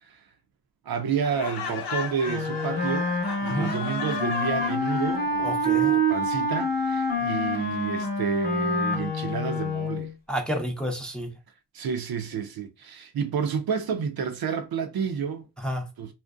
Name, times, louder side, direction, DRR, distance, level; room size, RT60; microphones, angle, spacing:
voice 1, 0.8-3.1 3.4-10.1 11.7-15.5 16.0-16.1, right 6 dB, 55° right, 0.5 m, -30 dB
Laughter, 1.2-5.3, left 6 dB, 65° left, 0.7 m, -36 dB
Wind instrument woodwind instrument, 2.3-10.1, equal, 20° left, 0.9 m, -27 dB
voice 2, 5.4-5.9 10.3-11.3 15.6-15.9, equal, ahead, 0.6 m, -30 dB
2.5 x 2.1 x 2.3 m
cardioid pair, 55°, 44 cm